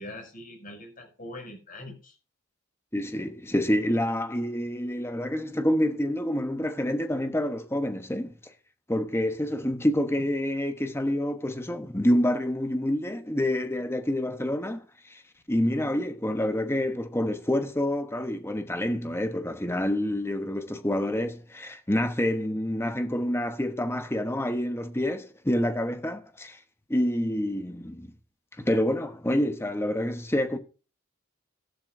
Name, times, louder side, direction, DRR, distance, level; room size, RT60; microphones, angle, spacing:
voice 1, 0.0-2.1, left 1 dB, 40° left, 6.8 m, -42 dB
voice 2, 2.9-8.5 8.9-15.2 15.5-26.6 26.9-28.1 28.6-30.6, left 1 dB, 10° left, 1.1 m, -27 dB
14.5 x 12.5 x 2.7 m
head